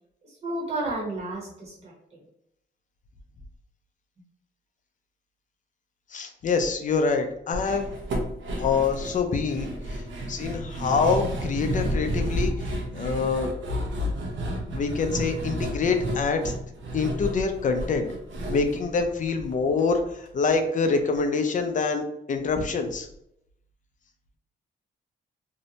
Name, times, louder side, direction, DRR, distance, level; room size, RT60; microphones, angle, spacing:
voice 1, 0.2-2.2 11.3-11.4, right 2 dB, 30° right, -5 dB, 0.9 m, -32 dB
voice 2, 6.1-7.9 8.6-9.7 10.3-12.5 12.9-13.5 14.7-16.5 16.9-18.1 18.5-23.1, left 4 dB, 40° left, 6 dB, 0.4 m, -25 dB
sound 1, 7.5-19.8 20.1-20.2 20.5-20.6, right 1 dB, 70° right, 0.7 m, -31 dB
2.6 x 2.0 x 2.8 m, 0.78 s
cardioid pair, 90°, 20 cm